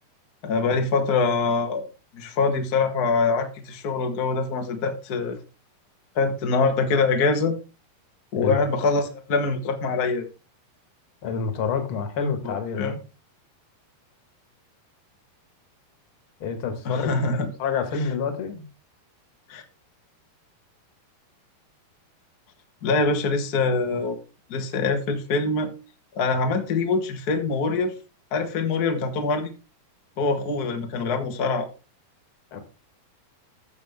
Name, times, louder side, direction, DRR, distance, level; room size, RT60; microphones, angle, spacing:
voice 1, 0.4-1.9 2.1-5.4 6.1-7.6 8.3-10.3 12.4-13.0 16.8-17.5 19.5-19.6 22.8-24.2 24.5-25.7 26.1-27.9 28.3-29.5 30.2-31.7, left 4 dB, 85° left, 5 dB, 0.8 m, -24 dB
voice 2, 11.2-12.9 16.4-18.7 32.5-32.6, left 5 dB, 50° left, 7 dB, 1.8 m, -28 dB
14.5 x 6.8 x 3.5 m, 0.31 s
omnidirectional pair, 4.5 m